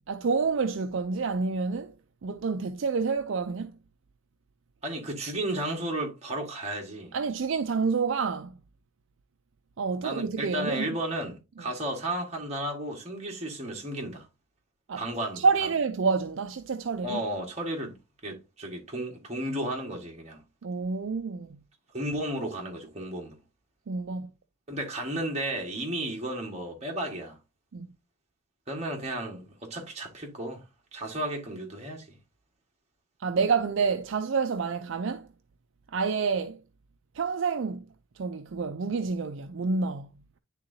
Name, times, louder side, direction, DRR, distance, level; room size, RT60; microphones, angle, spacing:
voice 1, 0.1-2.0 2.2-3.8 7.1-8.5 9.8-10.9 14.9-15.1 15.4-17.2 20.6-21.6 23.9-24.3 27.7-27.9 33.2-35.3 35.9-36.6 37.1-37.9 38.2-40.1, right 5 dB, 55° right, 0.4 m, -28 dB
voice 2, 4.8-7.1 10.0-14.3 15.0-15.4 17.0-18.0 18.2-20.4 21.9-23.4 24.7-27.4 28.7-30.6 30.9-32.1, right 1 dB, 30° right, 1.7 m, -33 dB
10.0 x 3.8 x 2.7 m
head